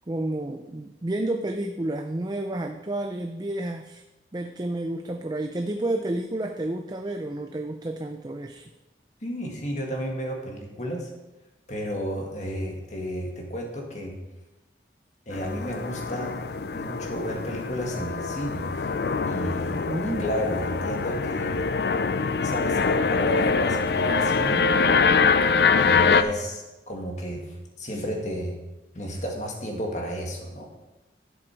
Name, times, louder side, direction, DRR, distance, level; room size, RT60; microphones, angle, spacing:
voice 1, 0.1-4.0 4.3-8.7 19.9-20.3, right 1 dB, 25° right, 5 dB, 0.5 m, -30 dB
voice 2, 9.2-11.1 11.7-14.2 15.3-16.4 16.7-21.6 22.4-24.7 25.7-27.4 27.8-28.6 28.9-30.7, equal, 40° left, 1 dB, 1.9 m, -32 dB
sound 1, 15.3-26.2, left 5 dB, 65° left, 0.5 m, -24 dB
11.0 x 7.8 x 4.5 m, 1.0 s
head